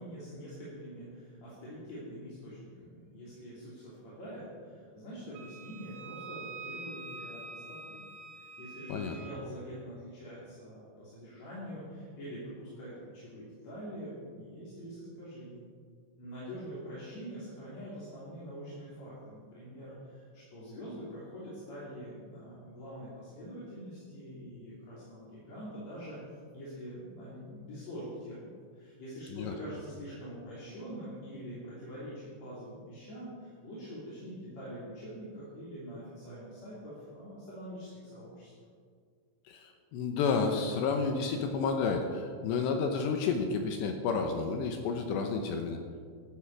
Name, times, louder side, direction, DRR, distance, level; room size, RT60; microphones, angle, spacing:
voice 1, 0.0-8.0 8.3-15.6 16.2-26.2 26.5-38.5, equal, 40° left, -9 dB, 3.5 m, -45 dB
Wind instrument woodwind instrument, 5.3-9.4, right 3 dB, 80° right, 2.1 m, -46 dB
voice 2, 39.5-45.8, left 5 dB, 80° left, 5 dB, 2.7 m, -31 dB
15.0 x 13.0 x 4.8 m, 2.1 s
omnidirectional pair, 5.9 m